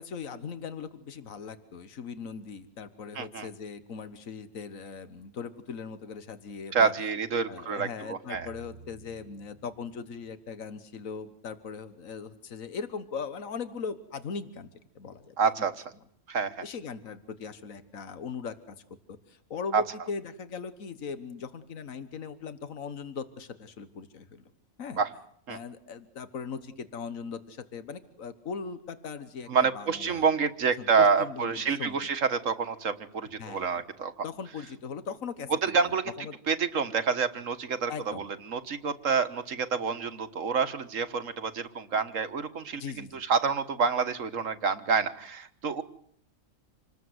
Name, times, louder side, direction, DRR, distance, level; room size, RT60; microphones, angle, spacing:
voice 1, 0.0-6.9 7.5-14.7 15.0-15.4 16.6-18.6 19.1-24.4 24.8-25.0 25.5-30.2 30.8-32.0 33.4-33.8 34.2-35.7 36.2-36.4 37.9-38.3 42.8-43.2, left 5 dB, 80° left, 11 dB, 1.7 m, -39 dB
voice 2, 3.2-3.5 6.7-8.5 15.4-15.7 16.3-16.5 19.7-19.8 25.0-25.1 25.5-25.6 29.5-34.2 35.6-36.0 36.5-42.8 43.1-45.8, right 5 dB, 75° right, 11 dB, 1.8 m, -28 dB
sound 1, 8.3-10.6, right 4 dB, 25° right, 1.6 m, -52 dB
27.5 x 20.0 x 8.0 m, 0.65 s
omnidirectional pair, 1.4 m